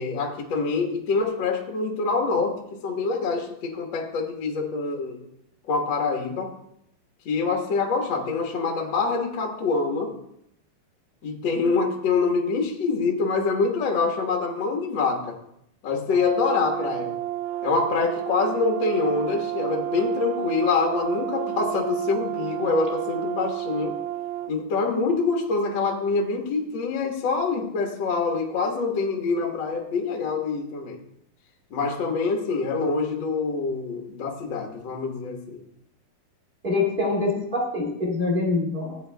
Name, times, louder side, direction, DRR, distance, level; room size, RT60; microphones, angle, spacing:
voice 1, 0.0-5.2 5.7-6.6 7.2-10.1 11.2-15.4 15.8-17.1 17.6-24.0 24.5-31.0 31.7-35.6, left 4 dB, 65° left, 1 dB, 1.1 m, -25 dB
Brass instrument, 16.1-24.5, right 13 dB, 80° right, 2.2 m, -31 dB
voice 2, 36.6-39.0, left 3 dB, 25° right, -4 dB, 1.0 m, -25 dB
16.0 x 9.1 x 2.3 m, 0.74 s
omnidirectional pair, 4.2 m